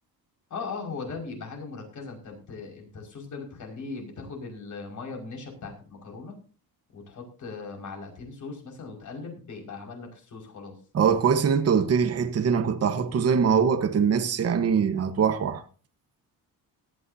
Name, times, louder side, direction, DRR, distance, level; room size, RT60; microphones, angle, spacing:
voice 1, 0.5-6.4 6.9-10.8, left 4 dB, 55° left, 5.5 m, -39 dB
voice 2, 10.9-15.6, right 6 dB, 40° right, 1.2 m, -23 dB
18.0 x 13.0 x 2.8 m
cardioid pair, 130°, 37 cm